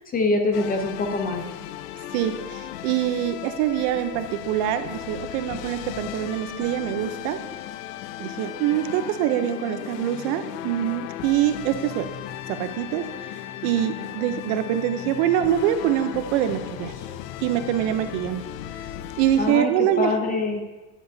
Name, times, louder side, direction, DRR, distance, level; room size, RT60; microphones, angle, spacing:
voice 1, 0.1-1.4 19.4-20.6, left 3 dB, 20° left, 5 dB, 0.6 m, -24 dB
sound 1, 0.5-19.5, left 12 dB, 80° left, 0.6 m, -36 dB
voice 2, 2.1-7.4 8.2-12.1 12.6-13.1 13.6-16.9 17.4-18.4 19.2-20.1, right 11 dB, 60° right, 10 dB, 0.7 m, -24 dB
10.0 x 9.3 x 2.7 m, 1.2 s
supercardioid pair, 150°, 47 cm